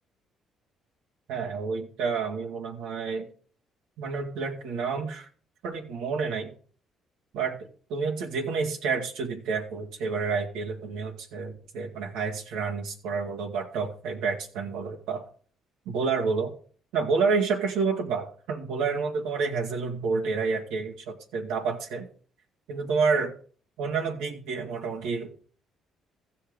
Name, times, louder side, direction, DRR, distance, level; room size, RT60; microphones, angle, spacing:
voice 1, 1.3-3.3 4.0-5.3 5.6-6.5 7.3-15.2 15.9-16.5 16.9-22.1 22.7-23.3 23.8-25.4, right 5 dB, 85° right, 0 dB, 1.7 m, -29 dB
14.5 x 5.8 x 5.1 m, 0.43 s
supercardioid pair, 75°, 0 cm